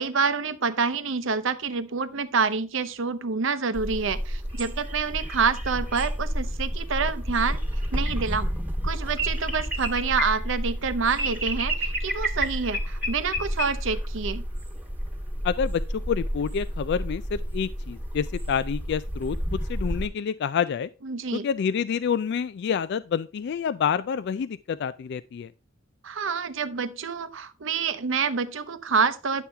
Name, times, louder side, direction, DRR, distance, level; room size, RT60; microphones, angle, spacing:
voice 1, 0.0-7.6 7.9-8.5 8.8-14.4 21.0-21.5 26.0-29.4, right 5 dB, 70° right, 0.8 m, -27 dB
Bald Eagle, 3.7-20.1, equal, 10° right, 1.5 m, -30 dB
voice 2, 15.4-15.8 16.1-20.9 21.3-25.5, left 7 dB, 55° left, 0.3 m, -28 dB
10.0 x 7.1 x 3.4 m
head